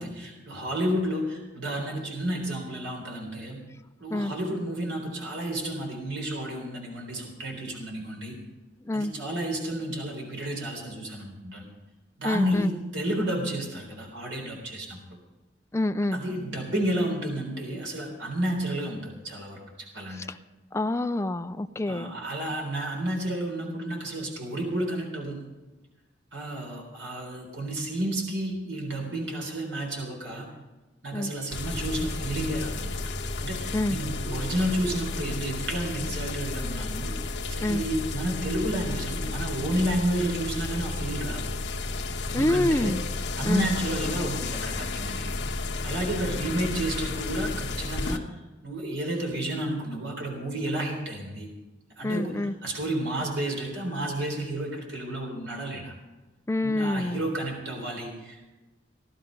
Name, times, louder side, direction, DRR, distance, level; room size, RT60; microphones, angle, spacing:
voice 1, 0.0-3.6 4.0-8.4 8.9-11.7 12.2-15.0 16.1-19.6 19.9-20.2 21.9-25.5 26.3-30.5 31.0-33.0 33.4-37.1 37.5-41.5 42.3-43.0 43.4-45.3 45.8-48.3 48.6-51.5 52.0-55.9 56.6-58.5, right 1 dB, 75° right, 1 dB, 3.8 m, -31 dB
voice 2, 12.2-12.7 15.7-16.2 20.1-20.4 20.7-22.1 31.1-31.3 33.7-34.0 37.6-37.8 42.3-43.0 43.4-43.7 52.0-52.5 56.5-57.2, left 1 dB, 15° left, 10 dB, 0.4 m, -27 dB
sound 1, 31.5-48.2, left 3 dB, 65° left, 1.3 m, -32 dB
18.0 x 11.5 x 5.3 m, 1.1 s
head